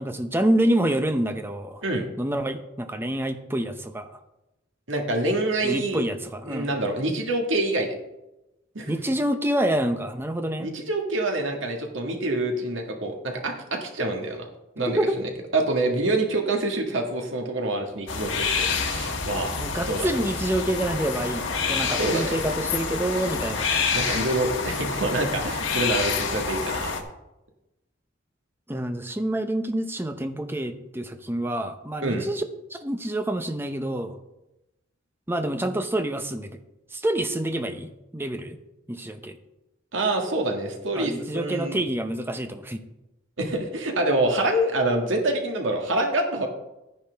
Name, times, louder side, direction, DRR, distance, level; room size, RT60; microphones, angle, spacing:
voice 1, 0.0-1.8 2.2-4.2 5.6-6.7 8.9-10.7 15.0-15.2 19.6-23.7 28.7-32.4 32.7-34.2 35.3-36.6 36.9-38.6 38.9-39.4 40.9-42.8, right 1 dB, 10° right, 7 dB, 0.8 m, -27 dB
voice 2, 4.9-6.1 6.5-7.9 8.8-8.9 10.6-14.5 14.8-18.5 18.8-19.5 19.9-20.1 22.0-22.3 23.9-26.9 32.0-32.2 39.9-41.8 43.4-46.5, right 2 dB, 85° right, 2 dB, 1.8 m, -26 dB
sound 1, 18.1-27.0, left 5 dB, 80° left, 1.4 m, -28 dB
11.5 x 10.0 x 3.5 m, 0.95 s
head